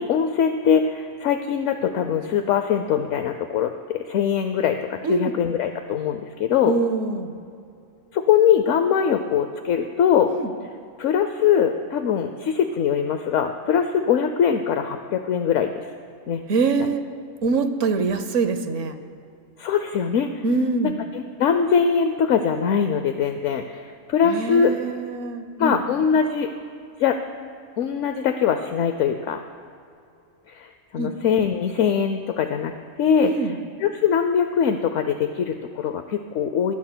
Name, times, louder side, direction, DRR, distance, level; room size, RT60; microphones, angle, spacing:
voice 1, 0.0-6.7 8.1-10.3 11.0-15.8 16.3-16.4 19.6-20.3 20.8-24.8 25.6-26.5 27.0-27.2 27.8-29.4 30.5-32.7 33.0-33.3 33.8-36.7, left 7 dB, 70° left, 7 dB, 0.9 m, -22 dB
voice 2, 5.0-5.3 6.6-7.3 10.3-10.5 16.5-17.0 17.4-18.9 20.4-21.0 24.2-25.8 31.0-31.1 33.2-33.6, right 4 dB, 70° right, 9 dB, 1.2 m, -24 dB
23.0 x 16.0 x 2.2 m, 2.5 s
omnidirectional pair, 1.4 m